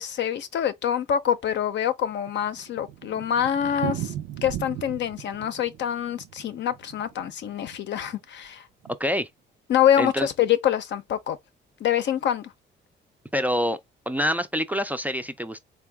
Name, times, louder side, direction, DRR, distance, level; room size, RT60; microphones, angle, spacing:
voice 1, 0.0-4.1 4.4-8.6 9.7-11.4 11.8-12.5, left 9 dB, 65° left, 0.6 m, -25 dB
Thunder, 1.9-8.2 8.4-8.5 8.8-8.9 9.2-9.3 9.8-10.2, right 12 dB, 90° right, 0.4 m, -37 dB
voice 2, 10.0-10.3 13.3-13.8 14.1-15.6, equal, 10° right, 0.4 m, -26 dB
3.7 x 2.3 x 3.4 m
cardioid pair, 90°, 20 cm